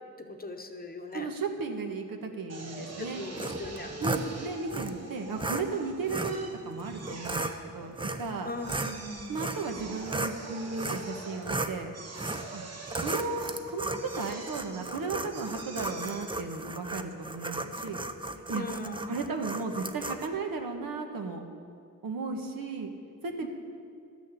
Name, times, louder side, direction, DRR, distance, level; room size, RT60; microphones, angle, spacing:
voice 1, 0.2-1.3 3.0-4.0 8.4-9.5 18.5-19.2 23.4-23.5, left 2 dB, 25° left, 5 dB, 0.9 m, -39 dB
voice 2, 1.1-3.2 4.0-8.5 9.3-11.9 12.5-12.7 13.0-18.0 18.3-18.6 19.0-21.4 22.0-22.9 23.2-23.5, right 4 dB, 80° right, 4 dB, 1.3 m, -35 dB
Drill, 2.5-17.8, right 3 dB, 50° right, 1.3 m, -46 dB
sound 1, 3.4-4.3 4.7-4.9 5.4-5.6 6.1-6.4 7.1-7.5 8.0-8.3 8.6-10.4 10.8-11.1 11.4-11.8 12.2-12.5 12.9-20.3, right 2 dB, 15° right, 0.5 m, -35 dB
12.5 x 6.4 x 8.2 m, 2.3 s
wide cardioid pair, 120°, 34 cm